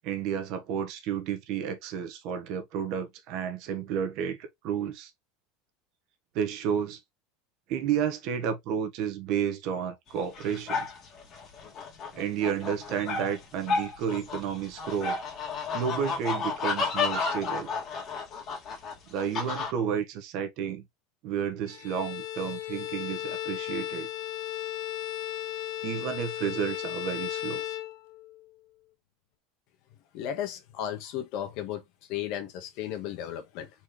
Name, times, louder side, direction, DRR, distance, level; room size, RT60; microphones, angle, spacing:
voice 1, 0.0-5.1 6.3-7.0 7.7-10.9 12.1-15.2 15.7-17.7 19.1-20.9 21.2-24.1 25.8-27.6, right 8 dB, 50° right, 1.1 m, -31 dB
sound 1, 10.2-19.7, left 4 dB, 35° left, 1.9 m, -32 dB
Bowed string instrument, 21.7-28.4, left 14 dB, 80° left, 0.7 m, -35 dB
voice 2, 30.1-31.8 32.1-33.7, left 10 dB, 55° left, 1.2 m, -34 dB
4.3 x 3.1 x 3.6 m
supercardioid pair, 155°, 0 cm